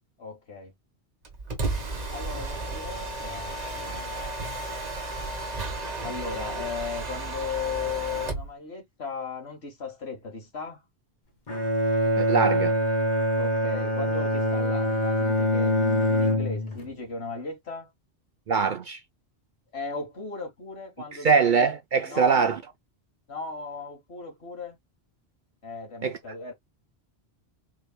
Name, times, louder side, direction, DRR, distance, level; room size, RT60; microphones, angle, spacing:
voice 1, 0.2-0.7 2.1-4.1 6.0-10.8 13.4-17.9 19.7-21.3 22.0-22.5 23.3-24.8 25.6-26.5, left 4 dB, 80° left, 1.9 m, -36 dB
Mechanisms, 1.3-8.5, right 2 dB, 40° right, 1.1 m, -33 dB
Bowed string instrument, 11.5-16.9, equal, 45° left, 1.1 m, -24 dB
voice 2, 12.2-12.8 18.5-19.0 21.2-22.6 26.0-26.2, right 5 dB, 55° right, 0.6 m, -22 dB
4.7 x 3.3 x 2.2 m
omnidirectional pair, 1.1 m